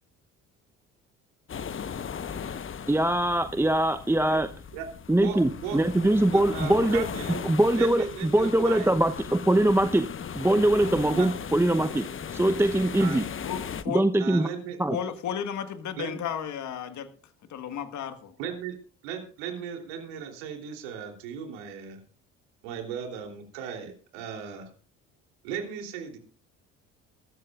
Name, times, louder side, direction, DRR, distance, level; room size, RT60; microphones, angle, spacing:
sound 1, 1.5-13.8, left 7 dB, 35° left, 1.1 m, -37 dB
voice 1, 2.9-4.5 5.1-7.0 7.4-10.1 10.3-12.1 12.3-13.2 13.9-14.5 14.8-15.0, right 1 dB, 5° right, 9 dB, 0.8 m, -22 dB
voice 2, 4.7-6.0 6.3-7.5 7.7-8.9 11.1-11.3 13.0-13.2 14.2-14.8 16.0-16.2 18.4-18.8 19.0-22.0 22.6-24.7 25.4-26.2, right 7 dB, 75° right, 3 dB, 3.3 m, -37 dB
voice 3, 13.4-14.0 14.9-17.1 17.5-18.3, left 8 dB, 50° left, 9 dB, 1.6 m, -33 dB
22.0 x 13.5 x 2.4 m, 0.40 s
hypercardioid pair, 55°, 37 cm